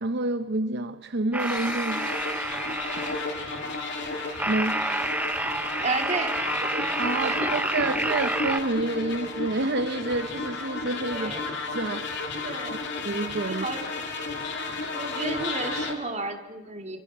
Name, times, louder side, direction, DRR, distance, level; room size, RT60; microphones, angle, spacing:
voice 1, 0.0-2.1 3.0-3.1 4.5-4.9 7.0-11.3 11.7-12.3 13.0-13.7, right 2 dB, 55° right, 0.8 m, -28 dB
sound 1, 1.3-8.6, right 2 dB, 5° right, 1.0 m, -30 dB
sound 2, 1.4-15.9, left 3 dB, 55° left, 3.3 m, -33 dB
sound 3, 1.4-5.0, left 4 dB, 20° left, 3.1 m, -49 dB
voice 2, 5.8-6.8 7.2-7.5 11.1-11.5 12.4-12.9 13.5-14.4 14.9-17.0, right 3 dB, 35° right, 2.6 m, -33 dB
29.5 x 25.5 x 6.2 m
head